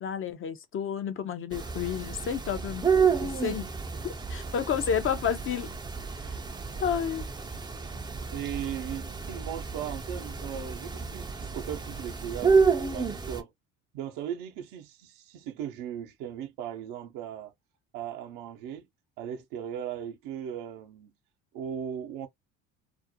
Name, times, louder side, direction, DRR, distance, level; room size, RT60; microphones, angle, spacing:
voice 1, 0.0-2.9 3.2-3.7 4.0-5.7 6.1-6.3 6.8-7.2, left 8 dB, 40° left, 0.5 m, -31 dB
sound 1, 1.5-13.4, right 5 dB, 15° right, 0.4 m, -30 dB
voice 2, 8.3-12.5 12.9-13.5 13.9-17.5 17.9-18.9 19.2-21.1 21.5-22.3, right 9 dB, 70° right, 0.7 m, -37 dB
2.4 x 2.0 x 2.6 m
hypercardioid pair, 70°, 35 cm